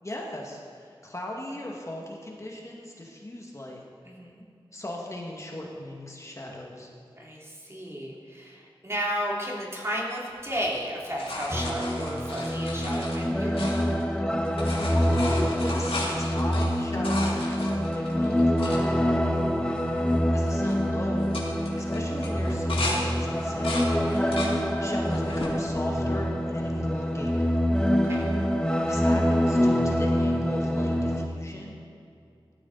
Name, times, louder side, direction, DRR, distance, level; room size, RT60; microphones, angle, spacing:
voice 1, 0.0-3.9 4.7-6.9 14.8-18.9 20.3-23.8 24.8-27.5 28.8-31.8, left 1 dB, 35° left, -1 dB, 2.1 m, -37 dB
voice 2, 4.0-4.4 7.2-13.6 19.2-19.8 24.1-24.5 27.9-28.4, equal, 30° right, -4 dB, 3.1 m, -34 dB
sound 1, 10.5-14.2 14.4-18.8 19.4-19.5 19.7-20.1 20.4-20.8 21.2-23.0 23.4-24.6 25.0-25.6 26.2-26.9 28.5-28.6, left 2 dB, 75° left, 2.7 m, -36 dB
sound 2, 11.5-31.3, equal, 10° left, 1.2 m, -25 dB
17.0 x 13.5 x 4.1 m, 2.4 s
wide cardioid pair, 80°, 9 cm